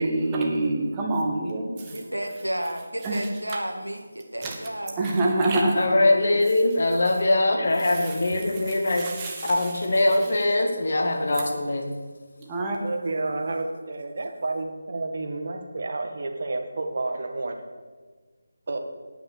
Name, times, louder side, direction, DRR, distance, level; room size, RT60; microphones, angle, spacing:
voice 1, 0.0-1.7 3.0-3.2 4.4-4.6 5.0-5.8 9.0-9.5 12.4-12.8, right 2 dB, 15° right, -1 dB, 1.8 m, -25 dB
voice 2, 1.7-5.2, right 1 dB, 85° right, 4 dB, 2.0 m, -32 dB
voice 3, 5.7-9.1 9.4-11.9, left 2 dB, 50° left, 3 dB, 2.1 m, -22 dB
voice 4, 12.8-17.6 18.7-18.8, right 2 dB, 45° right, 4 dB, 1.7 m, -30 dB
18.0 x 6.1 x 6.7 m, 1.4 s
figure-of-eight pair, 160°, 0 cm